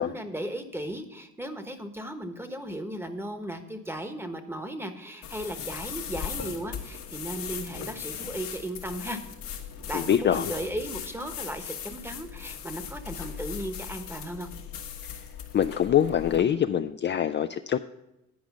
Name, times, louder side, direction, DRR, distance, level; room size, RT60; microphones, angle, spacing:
voice 1, 0.0-9.2 9.8-14.5, right 1 dB, 10° right, 7 dB, 1.1 m, -36 dB
sound 1, 5.2-16.4, left 8 dB, 85° left, 1.5 m, -38 dB
voice 2, 9.9-10.5 15.5-17.8, left 9 dB, 40° left, 8 dB, 0.4 m, -24 dB
10.5 x 5.0 x 7.2 m, 0.90 s
cardioid pair, 90°, 30 cm